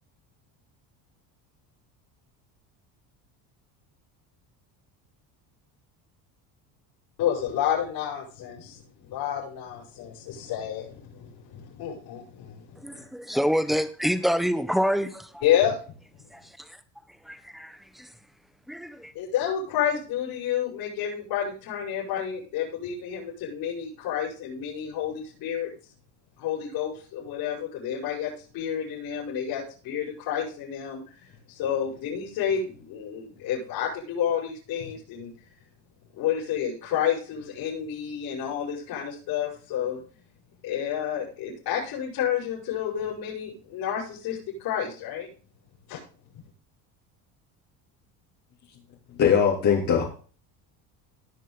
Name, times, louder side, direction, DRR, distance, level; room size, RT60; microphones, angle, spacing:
voice 1, 7.2-8.8 9.1-13.1 15.4-15.8 19.1-25.7 26.4-35.3 36.1-40.0 40.6-45.3 45.9-46.0, left 9 dB, 65° left, 7.3 m, -30 dB
voice 2, 12.8-15.3 16.3-16.4 17.3-17.8 18.7-19.1, equal, ahead, 1.2 m, -26 dB
voice 3, 49.2-50.0, left 7 dB, 50° left, 3.5 m, -20 dB
19.0 x 6.3 x 4.0 m
cardioid pair, 130°, 38 cm